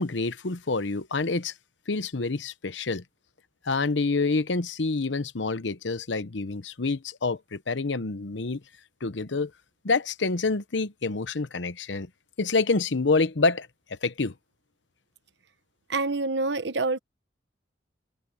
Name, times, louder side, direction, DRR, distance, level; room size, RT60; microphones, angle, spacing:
voice 1, 0.0-1.5 1.9-3.0 3.6-8.6 9.0-9.5 9.8-12.1 12.4-14.3, left 3 dB, 80° left, 0.9 m, -27 dB
voice 2, 15.9-17.0, right 3 dB, 70° right, 1.1 m, -26 dB
head